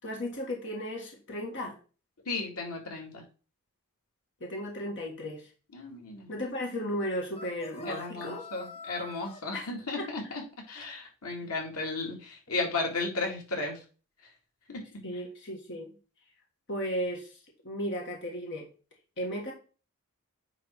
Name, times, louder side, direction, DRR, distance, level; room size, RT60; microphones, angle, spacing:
voice 1, 0.0-1.7 4.4-5.5 6.3-8.4 9.5-9.7 10.0-10.1 11.4-11.5 15.0-15.9 16.7-18.7 19.2-19.5, equal, 55° left, 0 dB, 1.8 m, -35 dB
voice 2, 2.3-3.2 5.7-6.3 7.9-10.4 10.7-13.8 14.7-15.0, left 3 dB, 90° left, 1 dB, 2.2 m, -34 dB
sound 1, 7.3-9.4, left 3 dB, 25° left, 0.9 m, -45 dB
9.4 x 3.7 x 4.5 m, 0.35 s
head